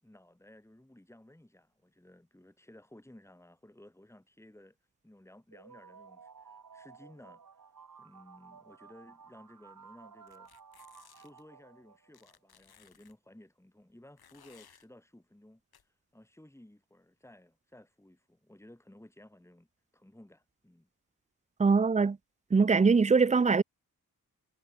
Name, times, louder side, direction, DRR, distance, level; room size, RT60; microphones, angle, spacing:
voice 1, 0.0-4.8 5.0-7.4 8.0-10.5 10.8-19.7 19.9-20.9, left 1 dB, 5° left, 4.7 m, -56 dB
sound 1, 5.5-12.3, right 6 dB, 60° right, 6.7 m, -55 dB
sound 2, 10.3-11.4 12.1-13.1 14.2-14.9 15.7-15.8, left 8 dB, 90° left, 5.1 m, -60 dB
voice 2, 21.6-22.2 22.5-23.6, right 4 dB, 20° right, 0.5 m, -22 dB
wide cardioid pair, 105°, 36 cm